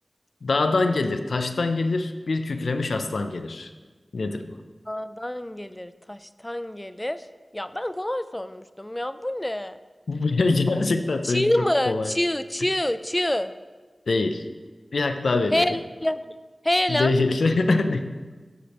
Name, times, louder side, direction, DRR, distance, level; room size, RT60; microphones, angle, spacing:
voice 1, 0.4-3.7 4.1-4.5 10.1-12.1 14.1-14.4 14.9-15.8 16.9-18.1, left 3 dB, 85° left, 8 dB, 0.4 m, -24 dB
voice 2, 4.9-7.2 7.5-9.8 11.2-13.5 15.5-16.3 16.6-17.1, left 1 dB, 20° left, 13 dB, 0.4 m, -26 dB
14.5 x 5.0 x 2.9 m, 1.4 s
cardioid pair, 40°, 0 cm